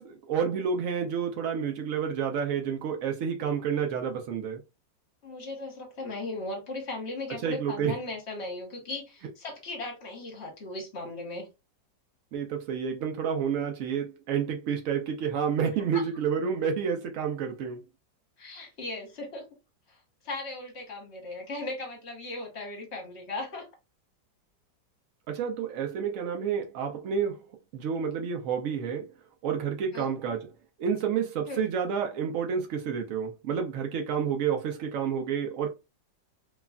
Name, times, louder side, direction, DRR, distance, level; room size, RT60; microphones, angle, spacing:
voice 1, 0.0-4.6 7.4-7.9 12.3-17.8 25.3-27.5 27.7-29.1 29.4-30.5 30.8-35.7, right 7 dB, 80° right, 0.7 m, -29 dB
voice 2, 5.2-11.5 15.9-16.0 18.4-19.5 19.9-20.0 20.2-23.7 29.9-30.1 31.5-31.7, left 2 dB, 45° left, 1.1 m, -37 dB
3.1 x 2.3 x 2.3 m
omnidirectional pair, 2.0 m